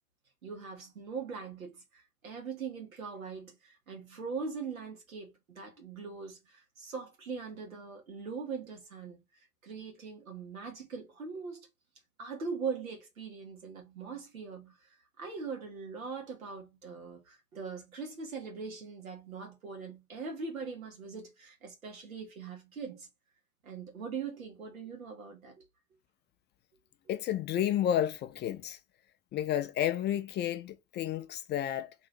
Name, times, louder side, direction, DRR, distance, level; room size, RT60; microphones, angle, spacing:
voice 1, 0.4-9.2 9.6-11.7 12.2-14.9 15.2-23.1 23.6-25.6, right 5 dB, 80° right, 1.4 m, -41 dB
voice 2, 27.1-28.8 29.3-31.9, left 11 dB, 25° left, 0.4 m, -31 dB
2.9 x 2.7 x 4.2 m
figure-of-eight pair, 80°, 41 cm